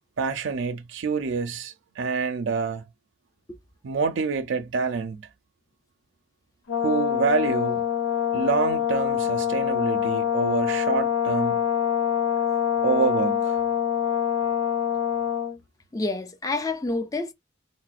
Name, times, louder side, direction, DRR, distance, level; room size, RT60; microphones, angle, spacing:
voice 1, 0.2-2.8 3.8-5.2 6.8-7.8 8.3-11.6 12.8-13.6, right 5 dB, 65° right, 0.4 m, -27 dB
Brass instrument, 6.7-15.6, left 9 dB, 85° left, 0.6 m, -25 dB
voice 2, 15.9-17.3, left 2 dB, 15° left, 0.3 m, -28 dB
4.7 x 2.0 x 2.3 m
head